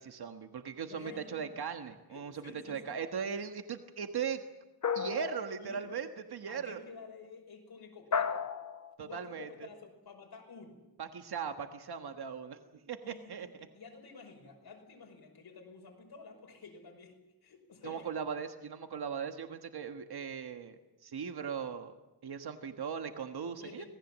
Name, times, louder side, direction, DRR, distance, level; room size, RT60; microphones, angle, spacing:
voice 1, 0.0-4.4 4.9-6.8 9.0-9.7 11.0-12.6 12.9-13.5 17.8-21.9 22.2-23.8, right 7 dB, 80° right, 6 dB, 1.5 m, -39 dB
voice 2, 0.9-1.5 2.1-2.8 5.6-6.0 6.5-8.4 9.0-10.8 13.0-18.1 23.6-23.9, left 4 dB, 80° left, 2 dB, 5.6 m, -51 dB
sound 1, 4.8-5.8 8.1-9.0, left 6 dB, 50° left, 1.1 m, -33 dB
26.0 x 19.5 x 7.4 m, 1.1 s
wide cardioid pair, 125°, 38 cm